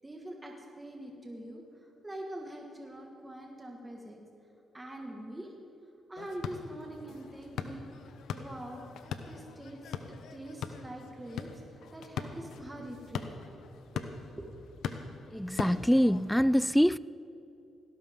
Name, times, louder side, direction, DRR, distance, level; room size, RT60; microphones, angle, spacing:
voice 1, 0.0-4.2 4.7-5.5 6.1-8.9 9.3-13.3 13.7-14.0 14.3-14.5, right 1 dB, 15° right, 1.9 m, -44 dB
sound 1, 6.2-16.3, left 6 dB, 85° left, 0.9 m, -41 dB
voice 2, 15.3-17.0, equal, ahead, 0.3 m, -24 dB
18.5 x 16.5 x 3.8 m
cardioid pair, 80°, 0 cm